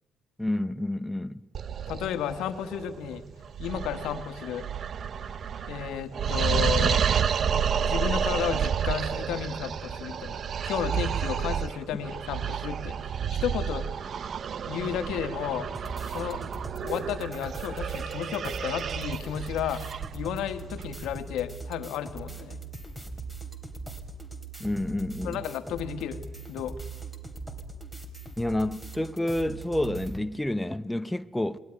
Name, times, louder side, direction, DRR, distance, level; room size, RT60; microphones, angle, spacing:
voice 1, 0.4-1.4 24.6-25.4 28.4-31.6, left 1 dB, 5° left, 0.7 m, -29 dB
sound 1, 1.5-21.2, right 7 dB, 55° right, 0.6 m, -30 dB
voice 2, 1.9-3.2 3.6-4.7 5.7-7.0 7.5-13.0 13.4-13.9 14.7-15.7 16.1-16.4 16.8-19.8 20.1-22.6 25.2-26.2 26.5-26.7, left 9 dB, 90° left, 1.4 m, -33 dB
sound 2, 15.7-30.2, right 3 dB, 10° right, 3.3 m, -40 dB
21.0 x 19.0 x 9.9 m
cardioid pair, 90°, 0 cm